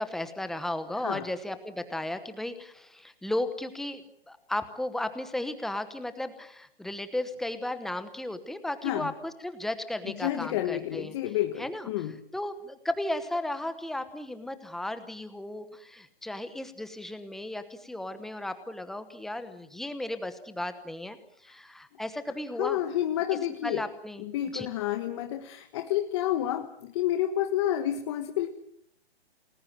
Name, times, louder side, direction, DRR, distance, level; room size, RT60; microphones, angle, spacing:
voice 1, 0.0-4.0 4.3-11.1 11.6-11.9 12.3-22.8 23.6-24.2 24.5-24.7, left 1 dB, ahead, 10 dB, 1.0 m, -35 dB
voice 2, 10.0-12.1 22.6-23.8 24.2-28.5, left 12 dB, 25° left, 6 dB, 1.3 m, -29 dB
29.0 x 20.0 x 7.7 m, 0.71 s
hypercardioid pair, 160°, 32 cm